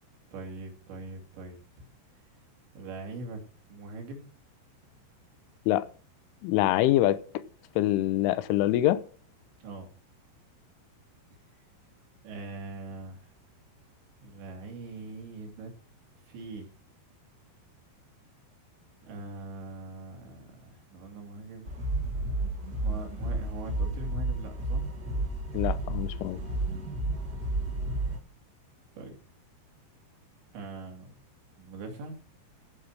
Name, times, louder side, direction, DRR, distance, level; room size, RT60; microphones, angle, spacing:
voice 1, 0.3-1.9 2.7-3.4 3.7-4.3 9.6-9.9 12.2-13.4 14.2-15.7 16.3-16.7 19.1-21.8 22.7-24.9 28.9-29.2 30.5-31.1 31.6-32.2, right 3 dB, 70° right, 4.7 m, -42 dB
voice 2, 6.4-7.2 7.8-9.0 25.5-26.4, left 14 dB, 85° left, 3.3 m, -25 dB
sound 1, 21.6-28.2, right 2 dB, 45° right, 1.3 m, -31 dB
15.0 x 5.9 x 6.3 m
omnidirectional pair, 5.5 m